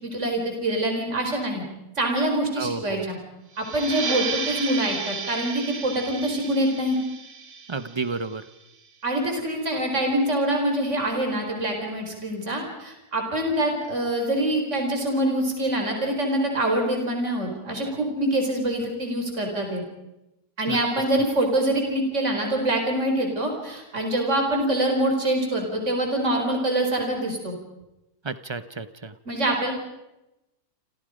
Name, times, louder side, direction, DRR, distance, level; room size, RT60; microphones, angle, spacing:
voice 1, 0.0-1.6 2.0-3.2 3.6-7.0 9.0-19.8 20.6-27.6 29.2-29.7, right 1 dB, 45° right, 2 dB, 5.0 m, -25 dB
voice 2, 2.6-3.1 7.7-8.4 20.7-20.8 28.2-29.1, right 4 dB, 20° right, 12 dB, 0.8 m, -31 dB
sound 1, 3.5-8.8, right 5 dB, 85° right, 2.4 m, -33 dB
29.0 x 27.5 x 5.2 m, 0.93 s
omnidirectional pair, 1.8 m